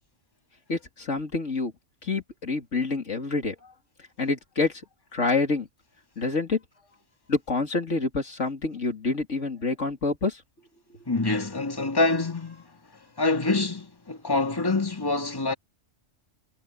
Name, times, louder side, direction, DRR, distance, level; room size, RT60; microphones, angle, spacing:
voice 1, 0.7-1.7 2.0-3.7 4.2-4.8 5.1-5.7 6.2-6.6 7.3-10.4, left 3 dB, 90° left, 3.2 m, -27 dB
voice 2, 11.1-12.6 13.2-15.5, left 2 dB, 20° left, 2.1 m, -25 dB
omnidirectional pair, 1.2 m